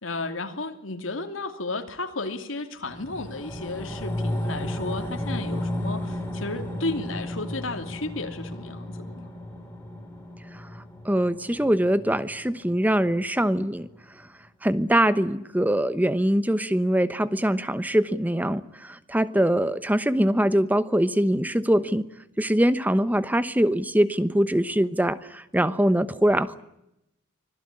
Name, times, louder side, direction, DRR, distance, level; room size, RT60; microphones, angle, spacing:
voice 1, 0.0-9.3, left 2 dB, 85° left, 6 dB, 2.8 m, -33 dB
sound 1, 2.8-13.4 13.8-13.9, left 1 dB, 10° left, 5.5 m, -34 dB
voice 2, 11.0-13.9 14.6-22.0 22.4-26.6, right 1 dB, 10° right, 14 dB, 0.9 m, -23 dB
25.0 x 17.0 x 9.9 m, 0.85 s
head